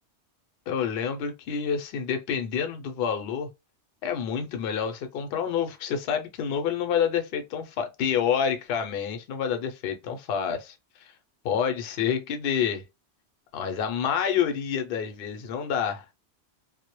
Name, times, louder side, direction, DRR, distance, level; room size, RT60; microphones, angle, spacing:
voice 1, 0.7-3.5 4.0-11.1 11.4-12.8 13.5-16.1, left 7 dB, 65° left, 0.7 m, -28 dB
2.1 x 2.0 x 2.9 m
omnidirectional pair, 1.2 m